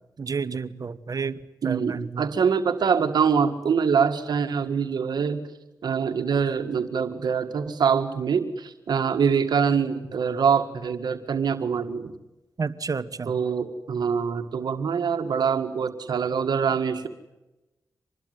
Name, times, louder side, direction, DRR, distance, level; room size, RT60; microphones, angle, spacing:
voice 1, 0.2-1.4 1.6-2.3 12.6-13.3, right 5 dB, 60° right, 15 dB, 1.2 m, -30 dB
voice 2, 1.6-5.4 5.8-12.1 13.3-17.1, right 6 dB, 85° right, 7 dB, 1.9 m, -24 dB
26.0 x 20.5 x 9.4 m, 1.0 s
cardioid pair, 55°, 7 cm